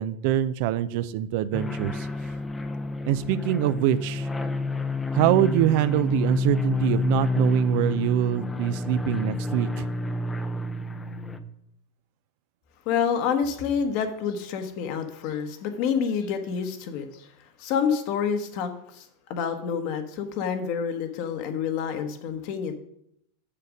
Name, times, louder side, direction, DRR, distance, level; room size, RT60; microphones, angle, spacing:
voice 1, 0.0-2.1 3.1-4.3 5.1-9.9, right 13 dB, 60° right, 15 dB, 0.5 m, -24 dB
sound 1, 1.5-11.4, left 3 dB, 10° left, 0.6 m, -29 dB
voice 2, 12.8-17.3 17.6-22.7, left 7 dB, 55° left, 7 dB, 1.2 m, -28 dB
7.0 x 6.6 x 5.1 m, 0.74 s
supercardioid pair, 130°, 0 cm